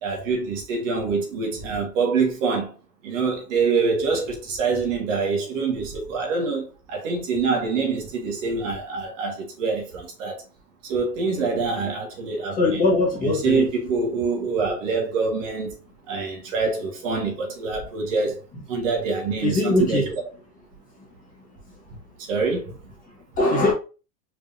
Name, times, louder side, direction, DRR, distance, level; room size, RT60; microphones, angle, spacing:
voice 1, 0.0-2.7 3.0-10.4 10.8-12.9 13.2-15.7 16.1-18.4 18.7-20.1 22.3-22.7, right 4 dB, 50° right, 1.8 m, -25 dB
voice 2, 12.6-13.7 19.4-20.1 23.4-23.7, left 2 dB, 15° left, 1.4 m, -20 dB
5.1 x 3.5 x 2.7 m
supercardioid pair, 155°, 49 cm